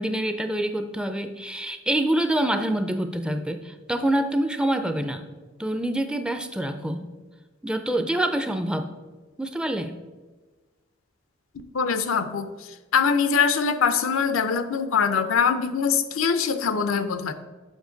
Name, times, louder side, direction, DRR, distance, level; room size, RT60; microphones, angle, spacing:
voice 1, 0.0-5.2 5.6-7.1 7.6-8.9 9.4-9.9, right 1 dB, 5° right, 8 dB, 0.4 m, -26 dB
voice 2, 11.7-12.5 12.9-17.3, left 6 dB, 85° left, 10 dB, 0.5 m, -23 dB
7.2 x 5.8 x 3.9 m, 1.3 s
head